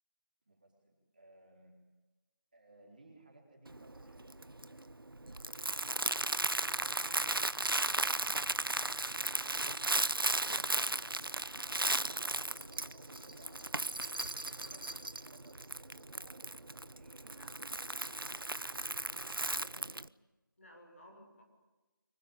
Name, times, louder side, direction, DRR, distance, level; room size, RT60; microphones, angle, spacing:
voice 1, 0.5-1.8 2.5-4.3 10.3-11.0 11.5-17.6 17.9-18.9 19.4-20.0, right 2 dB, 25° right, -1 dB, 4.2 m, -61 dB
Crumpling crinkling, 3.7-20.1, right 2 dB, 80° right, 0.9 m, -36 dB
voice 2, 6.6-7.4 17.4-17.5 20.6-21.4, left 1 dB, 35° left, 2 dB, 7.0 m, -57 dB
25.0 x 23.5 x 9.3 m, 1.1 s
figure-of-eight pair, 175°, 12 cm